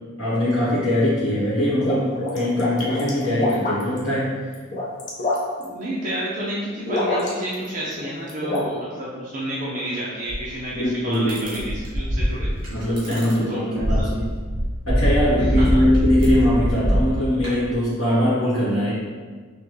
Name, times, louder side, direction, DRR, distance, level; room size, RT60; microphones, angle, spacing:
voice 1, 0.2-4.3 10.7-11.6 12.7-14.2 14.9-18.9, left 1 dB, 85° left, -11 dB, 1.4 m, -22 dB
sound 1, 1.5-4.0 4.5-5.6 6.9-7.7 7.9-8.6, left 2 dB, 35° left, 0.7 m, -26 dB
voice 2, 5.6-12.5 13.1-14.1 15.7-15.8, right 1 dB, 40° right, -7 dB, 0.6 m, -30 dB
sound 2, 10.3-10.5 11.1-13.3 13.8-17.7, equal, 65° right, 1.4 m, -22 dB
5.7 x 2.2 x 3.2 m, 1.5 s
head